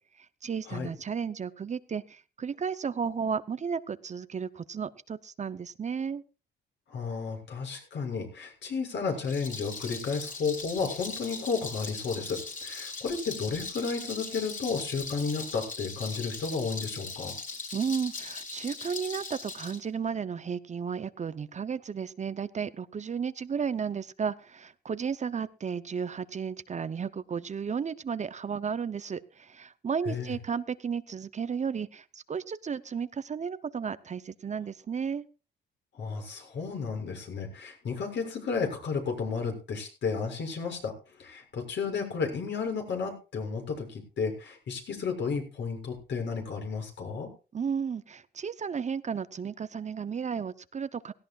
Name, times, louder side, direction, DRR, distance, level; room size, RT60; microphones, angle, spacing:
voice 1, 0.2-6.2 17.7-35.3 47.5-51.1, right 6 dB, 35° right, 14 dB, 0.7 m, -33 dB
voice 2, 6.9-17.4 30.0-30.3 35.9-47.3, left 5 dB, 65° left, 3 dB, 6.8 m, -33 dB
Rattle, 9.1-19.8, left 4 dB, 40° left, 4.5 m, -40 dB
17.5 x 16.5 x 2.4 m, 0.33 s
cardioid pair, 90°, 20 cm